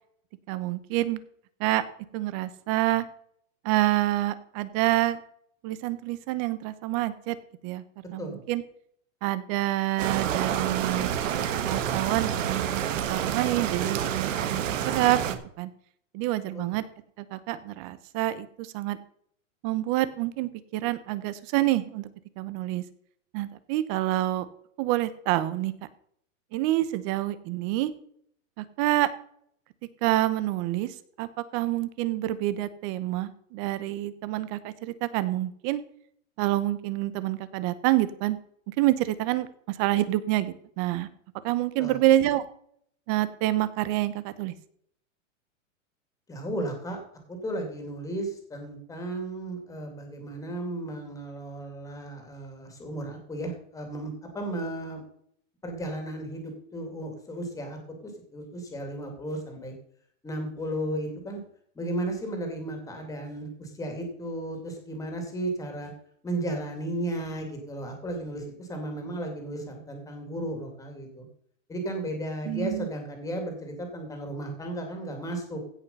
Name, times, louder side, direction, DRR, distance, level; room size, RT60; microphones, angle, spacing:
voice 1, 0.5-1.2 1.6-1.8 2.1-3.0 3.6-5.2 5.6-7.4 7.6-7.8 8.1-8.6 9.2-11.1 11.7-15.7 16.1-16.8 17.3-19.0 19.6-22.1 22.4-22.8 23.3-24.5 24.8-25.7 26.5-27.9 28.6-29.1 30.0-30.9 31.2-35.8 36.4-38.4 38.8-41.1 41.4-42.4 43.1-44.5 72.5-72.9, right 15 dB, 30° right, 15 dB, 0.8 m, -27 dB
sound 1, 10.0-15.4, right 9 dB, 75° right, 1.5 m, -28 dB
voice 2, 46.3-47.0 47.3-55.0 55.6-59.7 60.2-61.4 61.8-65.9 66.2-71.3 71.7-75.6, right 1 dB, 10° left, 4 dB, 2.5 m, -34 dB
16.0 x 5.6 x 5.5 m, 0.64 s
supercardioid pair, 160°, 39 cm